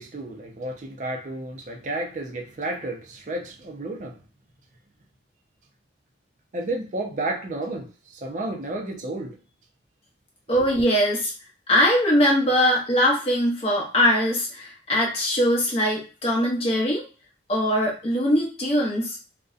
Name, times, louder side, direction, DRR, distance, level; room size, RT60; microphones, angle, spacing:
voice 1, 0.0-4.2 6.5-7.9 8.2-9.4, right 2 dB, 40° right, 0.4 m, -31 dB
voice 2, 10.5-11.3 11.7-17.0 17.5-19.2, equal, 30° left, 0.6 m, -21 dB
2.5 x 2.1 x 2.4 m
head